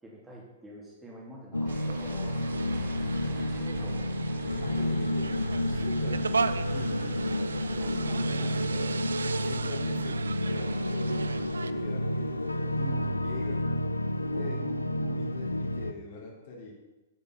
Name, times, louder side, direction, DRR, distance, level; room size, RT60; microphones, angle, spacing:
voice 1, 0.0-2.4 3.1-4.1 7.8-8.7 12.8-13.2 14.3-15.3, equal, 10° right, -4 dB, 3.0 m, -46 dB
sound 1, 1.5-15.9, left 1 dB, 85° left, 0.5 m, -30 dB
sound 2, 1.6-14.2 14.6-14.7, right 3 dB, 45° right, 2.6 m, -47 dB
sound 3, 1.7-11.7, right 4 dB, 75° right, 0.4 m, -37 dB
voice 2, 4.6-5.4 5.6-8.9 9.4-12.6 13.2-13.8 14.1-14.6 15.1-16.7, left 3 dB, 50° left, -2 dB, 3.0 m, -43 dB
9.4 x 6.9 x 6.2 m, 1.1 s
figure-of-eight pair, 105°, 0 cm